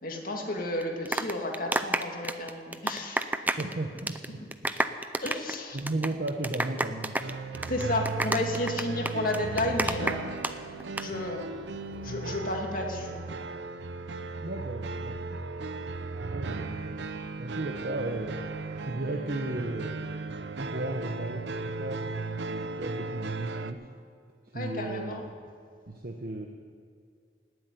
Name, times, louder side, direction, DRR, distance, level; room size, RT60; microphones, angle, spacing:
voice 1, 0.0-3.3 4.3-4.5 5.2-5.8 7.7-10.3 11.0-11.4 12.0-13.2 24.5-25.2, left 1 dB, 50° left, 2 dB, 2.2 m, -32 dB
sound 1, 0.8-3.7 4.0-4.3 4.5-10.5 10.8-11.0, right 2 dB, 10° right, 0.5 m, -30 dB
voice 2, 3.6-4.4 5.7-7.2 14.4-15.4 16.3-17.1 17.4-18.4 18.8-20.1 20.6-23.9 24.5-25.3 25.9-26.5, right 2 dB, 55° right, 1 dB, 1.0 m, -35 dB
sound 2, 7.2-23.7, right 3 dB, 80° right, 0.8 m, -36 dB
17.0 x 8.0 x 9.7 m, 2.2 s
head